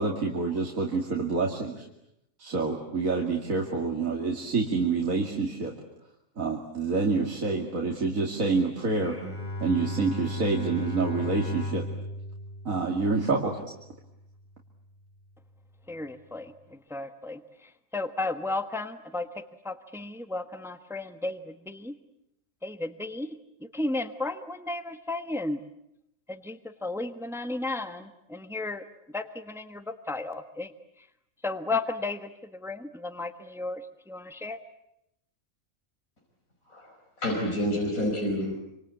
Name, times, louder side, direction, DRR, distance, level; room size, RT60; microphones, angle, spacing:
voice 1, 0.0-1.9 2.4-5.7 6.4-9.2 9.6-11.9 12.6-13.6, right 4 dB, 80° right, 0 dB, 2.9 m, -27 dB
Bowed string instrument, 9.0-14.2, left 1 dB, 45° left, 3.5 m, -36 dB
voice 2, 15.9-21.9 22.6-23.4 23.7-25.6 26.3-30.7 31.4-34.6, left 2 dB, ahead, 8 dB, 1.2 m, -34 dB
voice 3, 37.2-38.6, equal, 85° left, -1 dB, 5.6 m, -28 dB
27.0 x 26.5 x 8.4 m, 0.82 s
omnidirectional pair, 1.4 m